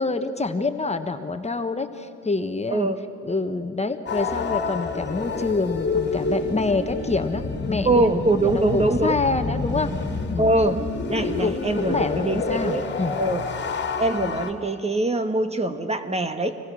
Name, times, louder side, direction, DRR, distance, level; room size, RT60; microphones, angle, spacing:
voice 1, 0.0-2.9 3.2-9.9 10.3-10.5 11.2-13.2, left 3 dB, 20° left, 7 dB, 1.2 m, -27 dB
sound 1, 4.1-14.5, left 4 dB, 35° left, 2.2 m, -28 dB
voice 2, 7.8-9.2 10.4-10.8 11.1-12.9 13.2-13.4 14.0-16.6, right 2 dB, 20° right, 8 dB, 1.3 m, -23 dB
26.0 x 20.0 x 6.3 m, 2.6 s
cardioid pair, 90°, 30 cm